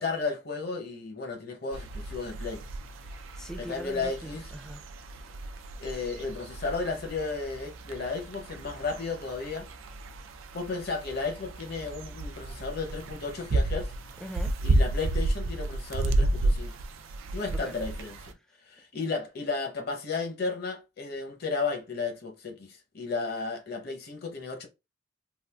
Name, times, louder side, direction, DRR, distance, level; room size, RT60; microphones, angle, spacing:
voice 1, 0.0-2.6 3.6-4.4 5.8-9.7 10.5-13.9 14.6-16.8 17.3-18.4 18.7-24.7, left 4 dB, 55° left, 0.8 m, -34 dB
sound 1, 1.7-18.3, right 2 dB, 90° right, 0.4 m, -32 dB
voice 2, 3.0-4.9 14.2-14.6 17.6-17.8, equal, 5° left, 0.4 m, -42 dB
3.8 x 2.4 x 2.3 m
head